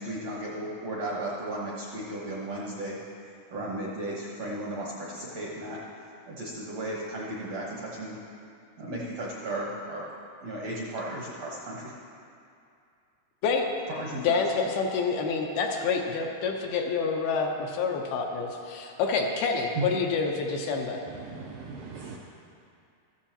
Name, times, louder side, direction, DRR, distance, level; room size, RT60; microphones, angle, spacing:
voice 1, 0.0-3.0 3.2-5.8 6.3-8.2 8.8-10.0 10.4-12.0 13.9-14.4 19.7-19.9, right 1 dB, 70° right, -4 dB, 1.6 m, -35 dB
voice 2, 14.2-21.0, left 4 dB, 80° left, 1 dB, 2.7 m, -27 dB
voice 3, 21.2-22.2, right 4 dB, 85° right, -1 dB, 1.8 m, -41 dB
14.0 x 13.5 x 2.9 m, 2.4 s
omnidirectional pair, 4.6 m